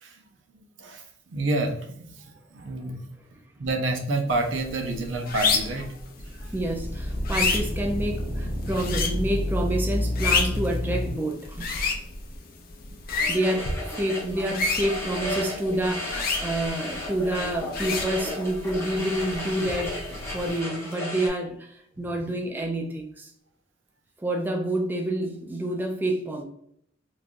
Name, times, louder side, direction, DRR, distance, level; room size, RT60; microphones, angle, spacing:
voice 1, 0.8-3.2 3.6-5.9 6.3-6.5 22.0-22.1, right 2 dB, 75° right, 0.5 m, -29 dB
sound 1, 4.3-20.6, left 4 dB, 50° left, 0.5 m, -31 dB
sound 2, 6.2-11.1, left 1 dB, 35° right, 1.4 m, -29 dB
voice 2, 6.5-11.7 13.3-21.7 22.0-23.3 24.2-26.4, right 1 dB, 10° right, 0.3 m, -28 dB
sound 3, 13.2-21.3, left 1 dB, 15° left, 0.9 m, -34 dB
3.2 x 2.4 x 2.4 m
head